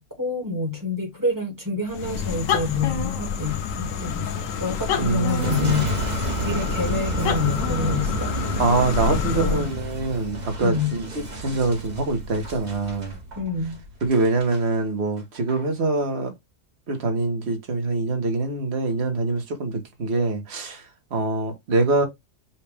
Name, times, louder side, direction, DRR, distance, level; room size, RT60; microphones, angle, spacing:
voice 1, 0.0-5.9 6.4-8.3 9.1-9.7 10.6-11.0 13.4-13.8, left 3 dB, 15° right, 1.4 m, -27 dB
sound 1, 1.9-9.8, left 7 dB, 85° left, 1.1 m, -28 dB
voice 2, 5.0-5.7 8.6-13.1 14.0-16.3 16.9-20.8 21.1-22.1, right 3 dB, 55° right, 1.5 m, -24 dB
Boom, 5.3-14.6 15.2-15.6, right 1 dB, 35° right, 1.1 m, -31 dB
5.8 x 2.5 x 3.3 m
omnidirectional pair, 1.3 m